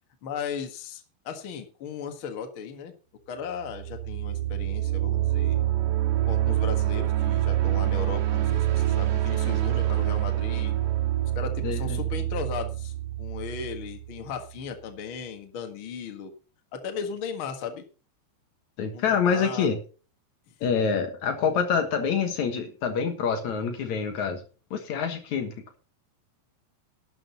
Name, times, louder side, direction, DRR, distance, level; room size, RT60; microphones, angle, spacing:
voice 1, 0.2-2.9 3.3-5.6 6.3-10.7 11.3-16.3 16.7-17.8 18.9-19.7 20.5-20.6, left 6 dB, 80° left, 5 dB, 1.1 m, -36 dB
sound 1, 3.6-14.4, right 13 dB, 65° right, 3.4 m, -26 dB
voice 2, 11.6-12.0 18.8-19.8 20.6-24.4 24.7-25.8, left 6 dB, 60° left, 6 dB, 2.0 m, -26 dB
12.0 x 7.8 x 5.5 m, 0.36 s
omnidirectional pair, 5.2 m